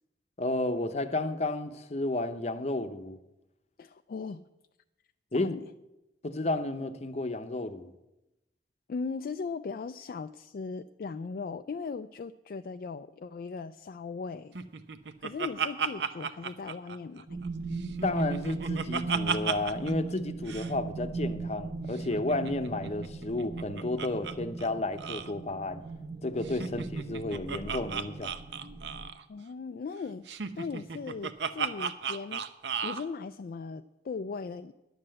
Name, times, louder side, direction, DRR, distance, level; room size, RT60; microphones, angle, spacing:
voice 1, 0.4-3.2 5.3-5.5 6.2-7.9 18.0-25.8 26.2-28.3, left 2 dB, 35° left, 9 dB, 0.7 m, -32 dB
voice 2, 3.8-4.5 5.3-5.7 8.9-14.6 15.2-17.4 26.7-26.8 29.3-30.3 30.6-32.4 32.8-34.7, left 4 dB, 55° left, 9 dB, 0.3 m, -38 dB
Laughter, 14.5-17.5 17.8-19.9 20.2-20.3 20.5-20.7 22.0-24.3 24.6-24.7 25.0-25.3 26.4-29.2 30.3-33.0, right 6 dB, 70° right, 0.6 m, -35 dB
sound 1, 17.3-29.1, right 3 dB, 45° right, 1.0 m, -38 dB
11.0 x 7.7 x 7.6 m, 0.97 s
head